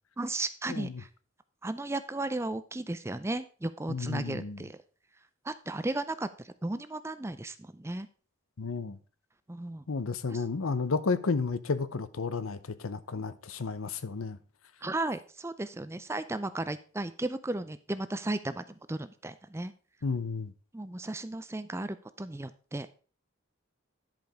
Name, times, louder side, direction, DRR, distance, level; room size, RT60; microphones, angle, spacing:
voice 1, 0.2-1.1 1.6-4.8 5.4-8.1 9.5-9.8 10.3-10.4 14.8-19.7 20.7-22.9, right 2 dB, 10° right, 0.4 m, -35 dB
voice 2, 3.9-4.6 8.6-9.0 9.9-14.4 20.0-20.5, left 4 dB, 85° left, 0.7 m, -32 dB
10.5 x 5.2 x 4.8 m
head